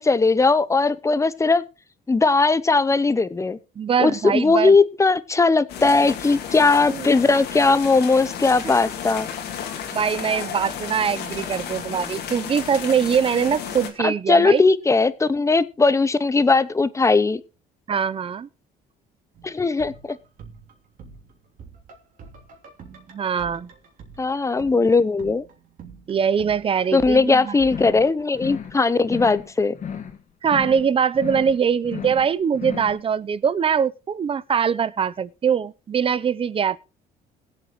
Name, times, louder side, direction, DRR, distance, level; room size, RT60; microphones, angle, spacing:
voice 1, 0.0-1.6 2.1-3.6 4.0-9.3 14.0-17.4 19.4-20.2 24.2-25.4 26.9-29.7, left 3 dB, 15° left, 0.8 m, -19 dB
voice 2, 3.8-4.8 6.9-7.1 9.9-14.6 17.9-18.5 23.1-23.7 26.1-27.6 28.5-28.6 30.4-36.8, right 7 dB, 35° right, 0.7 m, -22 dB
sound 1, 5.7-13.9, left 8 dB, 75° left, 2.5 m, -33 dB
sound 2, 19.3-29.3 29.6-29.7, right 5 dB, 55° right, 3.0 m, -46 dB
sound 3, 27.6-28.1 28.3-28.8 29.0-29.5 29.7-30.2 30.4-30.9 31.1-31.6 31.8-32.3 32.5-33.0, left 7 dB, 45° left, 2.0 m, -34 dB
21.0 x 8.0 x 3.1 m
cardioid pair, 110°, 17 cm